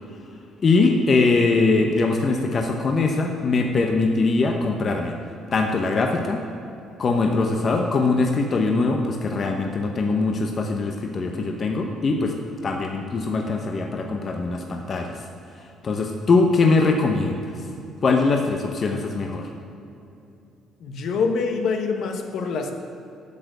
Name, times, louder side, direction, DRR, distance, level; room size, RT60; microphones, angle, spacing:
voice 1, 0.6-5.1 5.5-6.4 7.0-12.3 12.6-15.2 15.8-17.6 18.0-19.5, left 3 dB, 35° left, 3 dB, 0.8 m, -22 dB
voice 2, 20.8-22.7, left 4 dB, 60° left, 5 dB, 1.0 m, -25 dB
8.4 x 6.7 x 7.9 m, 2.7 s
cardioid pair, 130°, 0 cm